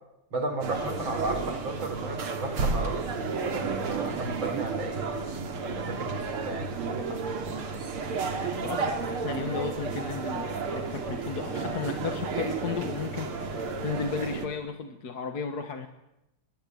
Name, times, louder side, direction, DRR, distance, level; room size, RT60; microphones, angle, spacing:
voice 1, 0.3-5.2 5.7-7.2, right 2 dB, 60° right, 9 dB, 4.5 m, -34 dB
sound 1, 0.6-14.5, right 4 dB, 75° right, 3.2 m, -32 dB
voice 2, 8.6-15.9, left 5 dB, 50° left, 7 dB, 1.9 m, -34 dB
25.0 x 21.0 x 9.3 m, 0.91 s
omnidirectional pair, 2.4 m